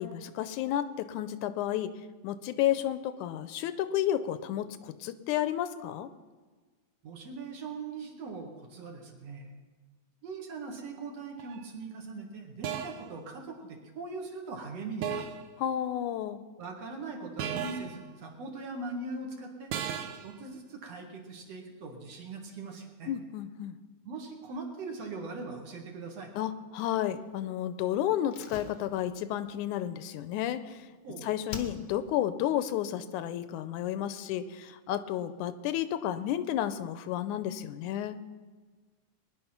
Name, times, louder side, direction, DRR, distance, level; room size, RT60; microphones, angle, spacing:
voice 1, 0.0-1.9 2.2-6.1 15.6-16.4 23.1-23.8 26.4-30.9 31.2-38.2, left 11 dB, 85° left, 12 dB, 2.1 m, -32 dB
voice 2, 7.0-9.5 10.2-15.2 16.6-19.7 20.2-23.1 24.0-26.3 31.0-31.3, right 3 dB, 60° right, 2 dB, 2.8 m, -41 dB
sound 1, 11.4-11.6 12.6-13.1 15.0-15.5 17.4-18.0 19.7-20.3, right 8 dB, 75° right, 2.0 m, -35 dB
Slam, 28.3-31.0 31.5-32.2 32.5-32.6, left 5 dB, 60° left, 1.1 m, -45 dB
20.5 x 10.5 x 5.9 m, 1.4 s
omnidirectional pair, 3.5 m